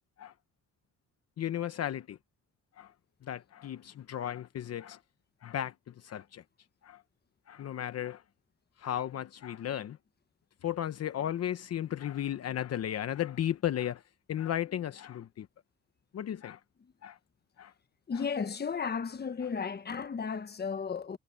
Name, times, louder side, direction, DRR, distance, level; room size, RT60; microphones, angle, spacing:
voice 1, 1.4-2.2 2.8-2.9 3.2-5.0 5.4-6.4 6.8-7.0 7.5-8.2 8.8-10.0 10.6-14.0 14.3-15.5 16.1-16.6 17.0-17.2 17.6-17.7, left 11 dB, 55° left, 0.9 m, -35 dB
voice 2, 18.1-21.2, left 6 dB, 35° left, 1.3 m, -34 dB
cardioid pair, 90°, 30 cm